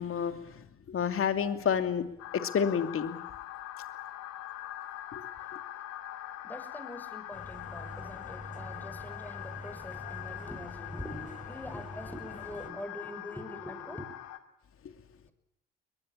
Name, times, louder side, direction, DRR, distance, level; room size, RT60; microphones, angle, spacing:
voice 1, 0.0-2.1 2.3-3.2 5.1-5.3 14.8-14.9, left 7 dB, 45° left, 9 dB, 2.7 m, -30 dB
sound 1, 2.2-14.4, left 13 dB, 65° left, 2.2 m, -43 dB
voice 2, 6.4-14.1, left 1 dB, 5° left, 9 dB, 6.4 m, -44 dB
sound 2, 7.3-12.7, left 1 dB, 25° left, 5.7 m, -46 dB
22.5 x 20.5 x 8.5 m, 0.84 s
hypercardioid pair, 60°, 30 cm